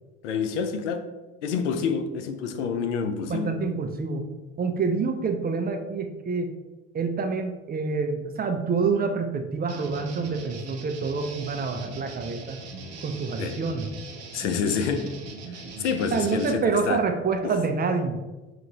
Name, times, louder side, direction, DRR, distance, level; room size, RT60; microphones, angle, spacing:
voice 1, 0.2-1.1 1.4-3.5 13.4-13.6 14.3-15.2 15.5-17.0 17.4-17.6, left 6 dB, 90° left, 0.5 m, -28 dB
voice 2, 3.3-4.3 4.6-6.6 6.9-12.6 13.0-13.9 16.1-18.2, right 4 dB, 25° right, 0.6 m, -27 dB
sound 1, 9.7-16.5, right 3 dB, 45° right, 0.9 m, -41 dB
5.8 x 2.5 x 3.0 m
hypercardioid pair, 75°, 34 cm